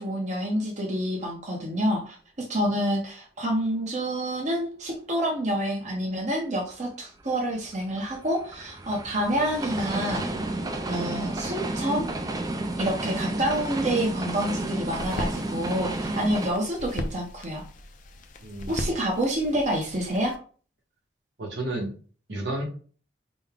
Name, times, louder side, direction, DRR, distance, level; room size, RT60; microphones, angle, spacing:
voice 1, 0.0-10.3 10.9-12.1 12.8-17.6 18.7-20.4, equal, 40° right, -1 dB, 0.9 m, -28 dB
sound 1, 7.2-16.5, right 2 dB, 20° right, 0.4 m, -31 dB
sound 2, 14.9-20.4, left 1 dB, 45° left, 0.5 m, -38 dB
voice 2, 18.4-18.9 21.4-21.9 22.3-22.6, right 1 dB, 75° right, 1 dB, 1.3 m, -31 dB
5.1 x 2.2 x 3.6 m, 0.40 s
head